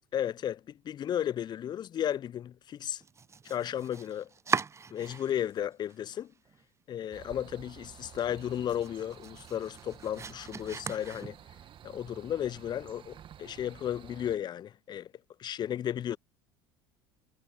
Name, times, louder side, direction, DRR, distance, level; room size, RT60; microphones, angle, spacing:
voice 1, 0.1-3.0 3.4-4.3 4.9-6.3 6.9-11.4 11.8-15.1 15.4-16.2, left 10 dB, 35° left, 0.5 m, -34 dB
Domestic sounds home sounds, 3.0-5.6 5.9-6.6 7.0-7.1 7.5-7.6 8.0-11.7, right 5 dB, 20° right, 0.7 m, -39 dB
sound 1, 7.1-14.4, right 10 dB, 40° right, 1.8 m, -52 dB
hypercardioid pair, 70°, 13 cm